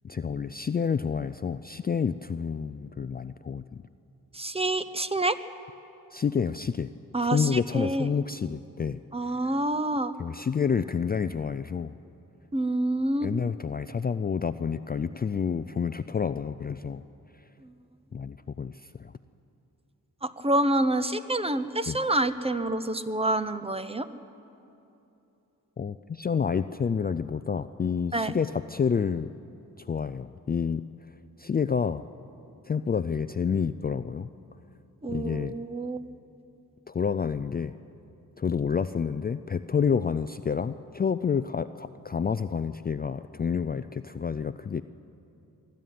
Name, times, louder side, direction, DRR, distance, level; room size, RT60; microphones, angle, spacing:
voice 1, 0.0-3.6 6.1-6.9 7.3-9.0 10.2-11.9 13.2-17.0 18.1-19.1 21.9-22.0 25.8-29.3 29.8-30.8 31.4-32.0 32.6-34.3 35.1-35.6 36.9-37.7 38.4-44.8, left 6 dB, 30° left, 11 dB, 0.4 m, -29 dB
voice 2, 4.3-5.4 7.1-8.1 9.1-10.1 12.5-13.3 17.6-17.7 20.2-24.1 28.1-28.3 35.0-36.1, right 1 dB, 15° right, 12 dB, 0.8 m, -27 dB
23.5 x 13.0 x 9.3 m, 2.9 s
wide cardioid pair, 100°, 35 cm